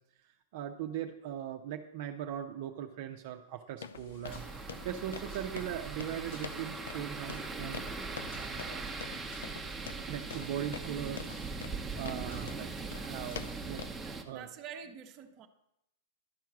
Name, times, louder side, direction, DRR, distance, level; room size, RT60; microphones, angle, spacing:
voice 1, 0.2-7.9 8.3-8.9 10.0-13.9 14.2-14.5, right 10 dB, 60° right, 3 dB, 0.7 m, -40 dB
sound 1, 3.8-13.9, left 7 dB, 80° left, 0.5 m, -46 dB
sound 2, 3.9-13.7, left 3 dB, 65° left, 2.0 m, -54 dB
sound 3, 4.2-14.2, right 4 dB, 10° right, 1.0 m, -40 dB
voice 2, 14.0-15.5, right 7 dB, 35° right, 6 dB, 0.9 m, -47 dB
11.5 x 4.6 x 6.1 m, 0.85 s
hypercardioid pair, 115°, 0 cm